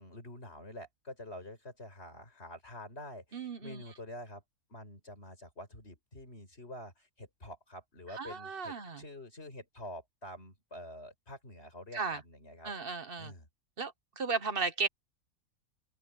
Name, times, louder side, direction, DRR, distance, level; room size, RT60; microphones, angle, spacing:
voice 1, 0.0-4.4 4.7-12.7 13.2-13.5, left 1 dB, 45° left, 5.8 m, -47 dB
voice 2, 3.3-3.8 8.1-9.0 11.9-12.2 12.6-13.3 13.8-14.9, right 4 dB, 40° right, 1.3 m, -35 dB
open air
omnidirectional pair, 1.5 m